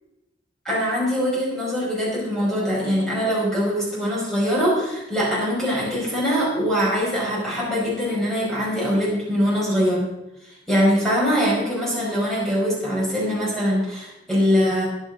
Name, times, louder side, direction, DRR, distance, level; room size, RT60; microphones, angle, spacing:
voice 1, 0.6-10.1 10.7-14.9, equal, 5° left, -7 dB, 4.9 m, -22 dB
14.5 x 10.0 x 3.9 m, 0.93 s
head